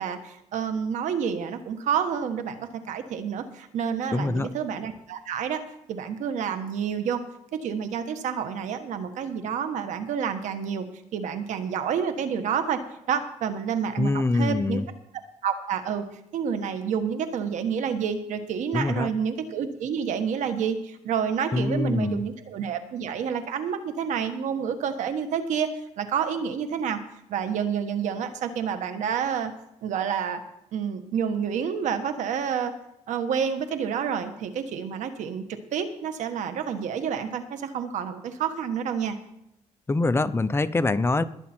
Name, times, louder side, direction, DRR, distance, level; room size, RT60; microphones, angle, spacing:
voice 1, 0.0-5.6 5.9-7.2 7.5-10.8 11.1-12.8 13.1-14.8 15.4-16.1 16.3-25.7 26.0-27.0 27.3-29.5 29.8-30.4 30.7-32.7 33.1-39.2, right 7 dB, 80° right, 9 dB, 1.4 m, -29 dB
voice 2, 4.1-4.5 14.0-14.8 18.7-19.1 21.5-22.2 39.9-41.2, left 3 dB, 20° left, 12 dB, 0.7 m, -24 dB
20.5 x 8.5 x 4.5 m, 0.83 s
cardioid pair, 100°, 12 cm